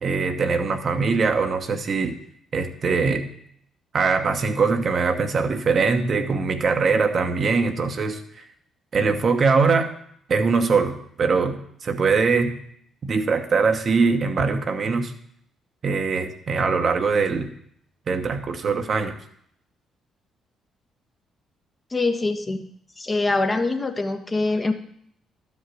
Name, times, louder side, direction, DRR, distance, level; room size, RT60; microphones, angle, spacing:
voice 1, 0.0-2.2 2.5-3.3 3.9-8.4 8.9-9.9 10.3-12.6 13.0-15.1 15.8-17.5 18.1-19.2, right 4 dB, 50° right, 6 dB, 1.0 m, -22 dB
voice 2, 21.9-22.7 23.0-24.7, left 3 dB, 30° left, 5 dB, 1.2 m, -24 dB
12.0 x 5.3 x 6.1 m, 0.67 s
hypercardioid pair, 45°, 0 cm